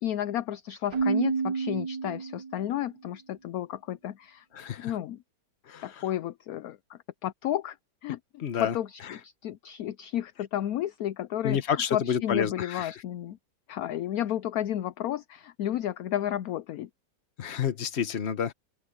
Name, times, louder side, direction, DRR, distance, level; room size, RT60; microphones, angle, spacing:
voice 1, 0.0-4.4 4.8-5.2 5.8-7.8 8.0-13.4 13.7-16.9, left 12 dB, 70° left, 1.0 m, -32 dB
Keyboard (musical), 0.9-2.7, right 5 dB, 75° right, 1.9 m, -29 dB
voice 2, 4.6-4.9 5.7-5.8 8.4-8.7 11.4-12.9 17.4-18.5, left 8 dB, 45° left, 1.2 m, -29 dB
open air
omnidirectional pair, 1.9 m